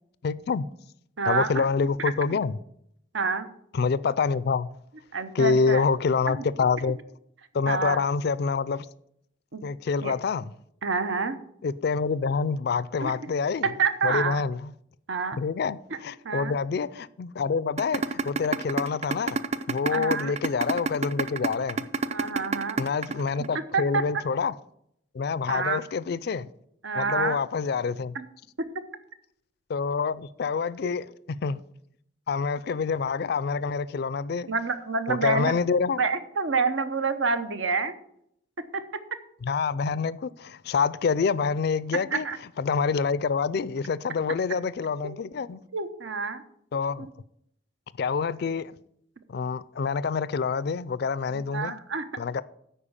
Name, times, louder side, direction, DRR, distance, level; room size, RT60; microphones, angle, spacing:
voice 1, 0.2-0.7 1.3-2.6 3.7-4.7 5.3-7.0 7.5-8.9 9.6-10.5 11.6-13.7 14.0-14.7 15.4-19.4 19.7-21.8 22.8-24.5 25.1-26.5 26.9-28.2 29.7-31.6 32.3-34.5 35.1-36.0 39.4-42.3 42.6-45.6 46.7-47.1 48.0-48.7 49.3-51.8 52.2-52.4, left 5 dB, 55° left, 0.4 m, -27 dB
voice 2, 1.2-1.6 3.1-3.5 5.1-5.8 6.3-6.4 7.7-8.0 9.5-9.6 10.0-10.1 10.8-11.4 13.0-13.1 13.6-14.4 15.1-15.4 16.2-16.5 19.9-20.3 22.1-22.8 23.7-24.0 25.5-25.8 26.8-27.4 28.1-28.2 34.5-35.5 36.0-37.9 38.7-38.8 42.1-42.4 45.0-45.2 45.7-46.4 47.0-47.1 51.3-52.0, right 4 dB, 75° right, 0.8 m, -27 dB
sound 1, 17.8-23.8, right 4 dB, 35° right, 0.4 m, -27 dB
10.0 x 4.4 x 7.2 m
head